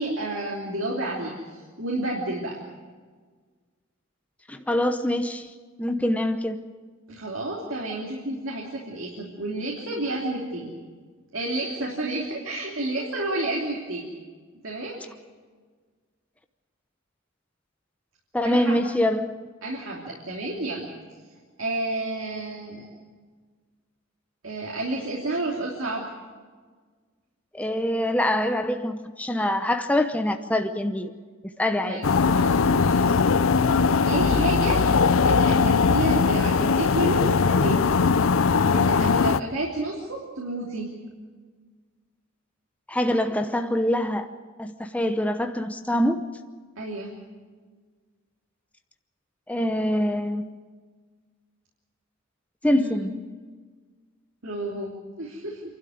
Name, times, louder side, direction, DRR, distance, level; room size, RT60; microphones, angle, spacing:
voice 1, 0.0-2.6 7.1-10.7 11.3-14.1 14.6-15.0 18.4-18.8 19.6-20.9 21.6-22.9 24.4-26.0 31.8-32.0 32.3-33.2 34.0-34.9 35.3-38.0 38.7-40.9 46.8-47.1 52.7-53.0 54.4-55.6, right 1 dB, 70° right, -2 dB, 3.1 m, -30 dB
voice 2, 4.5-5.5 5.8-6.6 18.3-19.4 27.5-31.1 31.6-32.0 42.9-44.3 44.6-46.2 49.5-50.5 52.6-53.1, left 1 dB, 5° left, 6 dB, 0.8 m, -24 dB
sound 1, 32.0-39.4, left 5 dB, 75° left, 0.5 m, -20 dB
27.0 x 12.5 x 9.4 m, 1.5 s
head